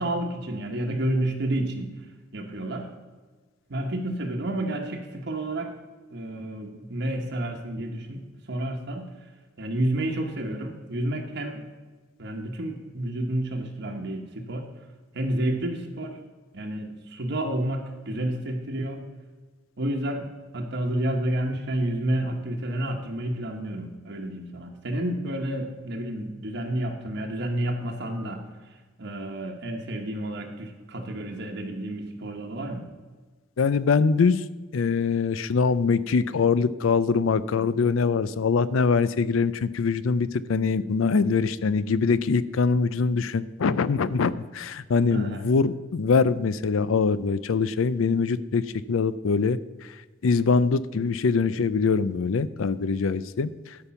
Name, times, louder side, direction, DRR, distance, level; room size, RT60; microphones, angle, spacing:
voice 1, 0.0-1.9 2.3-2.9 3.7-5.7 6.1-8.2 8.5-9.1 9.6-11.6 12.2-14.6 15.1-16.2 16.5-19.0 19.8-20.3 20.5-28.4 29.0-32.8 45.1-45.5, right 1 dB, 60° right, 2 dB, 1.0 m, -30 dB
voice 2, 33.6-34.5 34.7-53.8, left 5 dB, 80° left, 16 dB, 0.5 m, -23 dB
12.5 x 5.3 x 5.8 m, 1.4 s
head